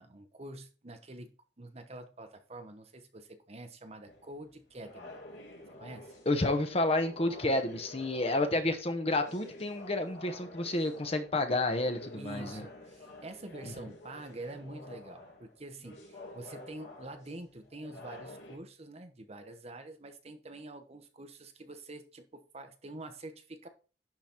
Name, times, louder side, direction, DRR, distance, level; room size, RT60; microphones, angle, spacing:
voice 1, 0.0-5.2 5.8-6.2 12.1-23.7, right 2 dB, 35° right, 7 dB, 1.0 m, -46 dB
sound 1, 4.1-18.6, left 2 dB, 80° left, 2.8 m, -50 dB
voice 2, 6.3-12.6 13.8-13.9, left 2 dB, 35° left, 7 dB, 1.0 m, -30 dB
11.0 x 4.0 x 4.5 m, 0.37 s
head